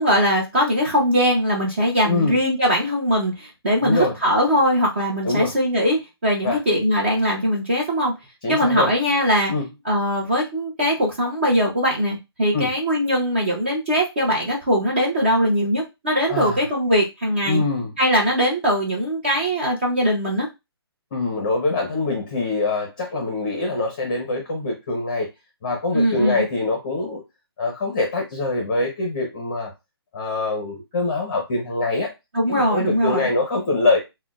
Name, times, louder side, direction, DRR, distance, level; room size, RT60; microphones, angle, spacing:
voice 1, 0.0-8.1 8.5-9.5 9.8-17.6 18.0-20.5 25.9-26.4 32.3-33.3, equal, 25° right, -2 dB, 0.7 m, -21 dB
voice 2, 2.0-2.4 3.8-4.1 5.2-5.5 6.4-6.6 8.4-8.9 9.5-9.7 12.5-12.7 16.3-16.6 17.4-17.9 21.1-25.3 25.6-27.2 27.6-29.7 30.1-32.1 32.5-34.0, left 3 dB, 20° left, 0 dB, 0.7 m, -24 dB
5.8 x 2.1 x 2.4 m, 0.23 s
hypercardioid pair, 175°, 14 cm